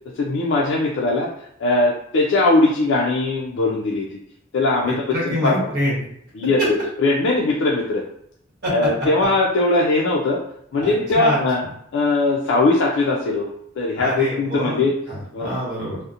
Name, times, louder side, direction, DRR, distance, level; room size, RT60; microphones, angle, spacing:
voice 1, 0.2-1.3 1.6-4.2 4.5-5.6 6.3-8.0 8.7-10.4 10.7-11.6 11.9-13.5 13.8-14.9 15.3-15.5, left 2 dB, 60° left, -3 dB, 0.4 m, -20 dB
voice 2, 4.8-6.0 8.6-8.7 10.8-11.4 14.0-16.0, equal, 50° right, -5 dB, 1.0 m, -26 dB
2.7 x 2.0 x 2.4 m, 0.72 s
head